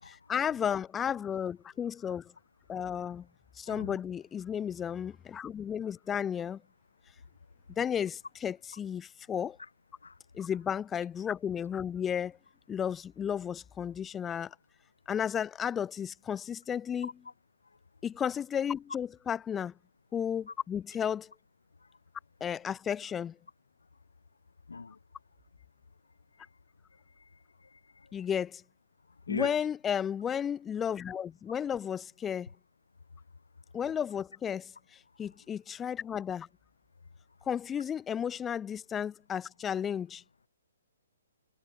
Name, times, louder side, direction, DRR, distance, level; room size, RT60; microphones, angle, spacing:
voice 1, 0.1-2.3 2.7-3.3 3.6-6.6 7.8-9.6 10.3-12.4 12.7-14.5 15.1-17.1 18.0-19.7 20.1-21.3 22.4-23.4 28.1-28.6 29.3-32.5 33.7-36.5 37.5-40.2, left 8 dB, 15° left, 4.2 m, -33 dB
voice 2, 3.7-4.0 10.0-10.1 17.0-17.1 24.7-25.0 27.7-28.1 29.3-29.5, left 4 dB, 70° left, 3.2 m, -39 dB
figure-of-eight pair, 125°, 0 cm